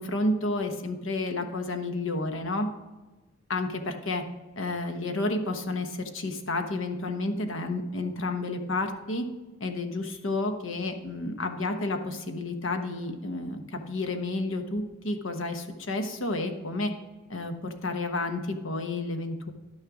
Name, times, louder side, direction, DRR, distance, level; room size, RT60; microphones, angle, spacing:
voice 1, 0.0-2.7 3.5-4.2 4.6-9.2 9.6-16.9 17.3-19.5, left 2 dB, 85° left, 6 dB, 1.1 m, -31 dB
11.0 x 6.5 x 4.9 m, 1.2 s
head